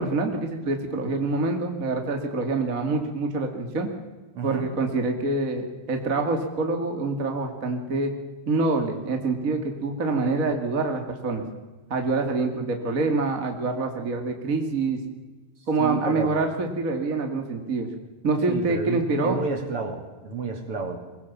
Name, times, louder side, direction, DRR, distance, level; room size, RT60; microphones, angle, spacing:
voice 1, 0.0-3.9 4.4-8.1 8.5-11.4 11.9-15.0 15.7-17.9 18.2-19.4, right 3 dB, 30° right, 4 dB, 2.2 m, -26 dB
voice 2, 4.3-4.7 15.8-16.4 18.5-21.0, right 4 dB, 45° right, 5 dB, 3.0 m, -31 dB
23.5 x 21.0 x 7.3 m, 1.2 s
omnidirectional pair, 4.0 m